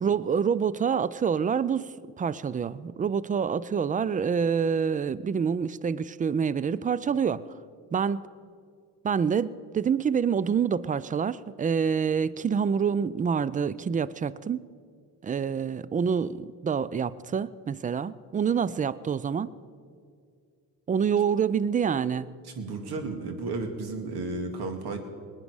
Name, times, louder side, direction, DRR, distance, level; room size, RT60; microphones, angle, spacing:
voice 1, 0.0-1.9 2.2-7.5 7.9-8.2 9.0-14.6 15.2-19.5 20.9-22.3, right 7 dB, 20° right, 19 dB, 0.4 m, -27 dB
voice 2, 22.6-25.0, right 3 dB, 50° right, 6 dB, 2.3 m, -33 dB
25.5 x 9.1 x 4.9 m, 2.2 s
figure-of-eight pair, 45°, 48 cm